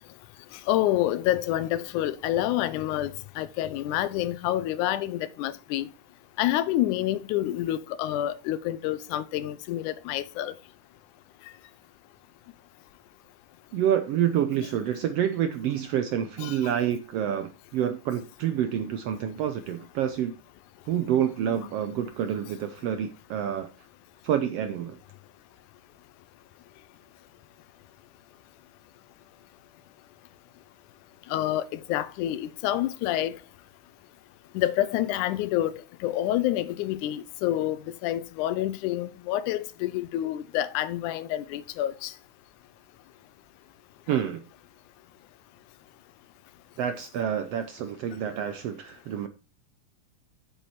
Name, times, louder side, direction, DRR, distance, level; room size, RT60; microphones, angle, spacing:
voice 1, 0.5-5.9 6.4-10.6 16.4-16.6 31.3-33.4 34.5-35.7 36.0-42.1, left 13 dB, 85° left, 2.1 m, -28 dB
voice 2, 13.7-20.3 20.9-23.7 24.2-25.0 44.1-44.4 46.8-49.3, right 9 dB, 80° right, 1.4 m, -28 dB
8.7 x 7.0 x 4.7 m
omnidirectional pair, 3.5 m